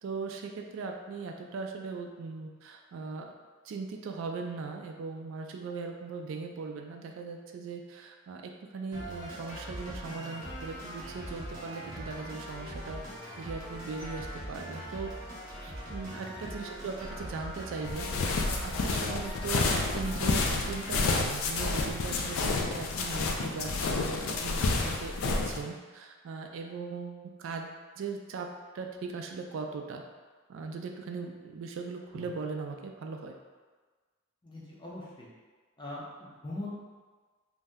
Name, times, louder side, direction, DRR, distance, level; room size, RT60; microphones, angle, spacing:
voice 1, 0.0-3.2 3.6-13.0 13.4-15.1 15.6-28.5 28.7-30.0 30.5-33.3, right 4 dB, 70° right, 4 dB, 0.3 m, -39 dB
sound 1, 8.9-20.9, equal, 20° right, 0.9 m, -41 dB
sound 2, 17.8-25.6, left 3 dB, 85° left, 0.3 m, -30 dB
voice 2, 34.4-35.3 35.8-36.7, left 1 dB, 20° left, -6 dB, 0.6 m, -43 dB
2.6 x 2.1 x 3.4 m, 1.4 s
head